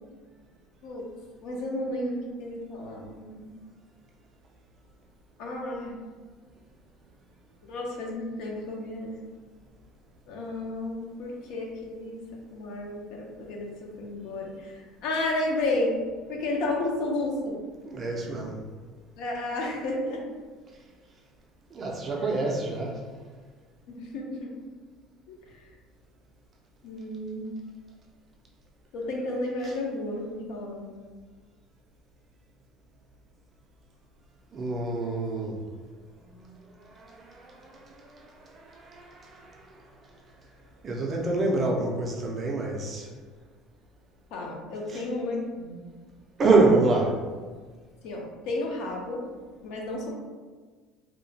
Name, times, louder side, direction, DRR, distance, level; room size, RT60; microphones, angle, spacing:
voice 1, 1.4-3.5 5.4-5.9 7.6-9.1 10.3-12.2 12.5-16.0 16.3-17.6 19.2-20.3 22.1-22.3 23.9-24.6 25.3-25.7 26.8-27.5 28.9-30.9 44.3-45.8 48.0-49.2 49.6-50.1, left 2 dB, 60° left, 0 dB, 0.5 m, -32 dB
voice 2, 17.8-18.5 21.7-23.0 34.5-35.6 37.0-37.7 38.1-38.3 38.6-39.6 40.8-43.1 44.9-45.0 46.4-47.2, right 3 dB, 25° right, -1 dB, 0.4 m, -26 dB
2.8 x 2.1 x 2.7 m, 1.4 s
cardioid pair, 165°, 0 cm